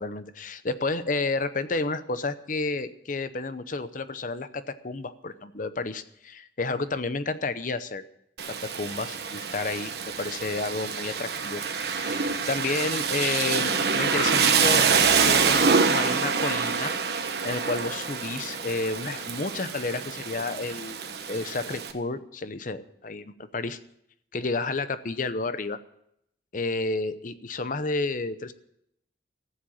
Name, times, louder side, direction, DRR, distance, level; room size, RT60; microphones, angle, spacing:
voice 1, 0.0-8.0 8.5-11.6 11.9-16.9 17.4-21.0 21.3-23.8 24.3-25.8 26.5-28.5, left 3 dB, 45° left, 12 dB, 0.8 m, -31 dB
Rain, 8.4-21.9, right 5 dB, 65° right, 1.2 m, -26 dB
14.5 x 7.7 x 8.6 m, 0.76 s
head